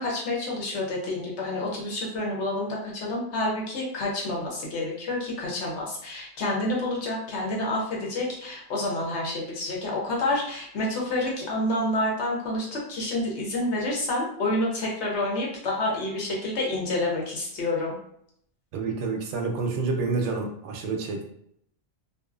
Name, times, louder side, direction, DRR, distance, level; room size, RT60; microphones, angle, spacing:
voice 1, 0.0-17.9, left 1 dB, 70° left, -2 dB, 1.1 m, -28 dB
voice 2, 18.7-21.3, right 4 dB, 75° right, 2 dB, 0.9 m, -28 dB
2.6 x 2.4 x 2.4 m, 0.70 s
omnidirectional pair, 1.2 m